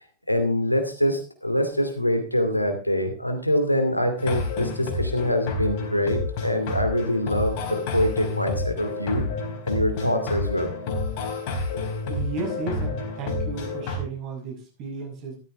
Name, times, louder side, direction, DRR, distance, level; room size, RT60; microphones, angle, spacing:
voice 1, 0.3-9.3 9.7-10.7, equal, 90° left, 6 dB, 2.4 m, -24 dB
sound 1, 4.2-14.0, left 3 dB, 45° left, 4.0 m, -29 dB
voice 2, 12.1-15.4, right 4 dB, 40° right, 2 dB, 6.0 m, -34 dB
14.0 x 13.5 x 3.5 m, 0.32 s
figure-of-eight pair, 90°, 0 cm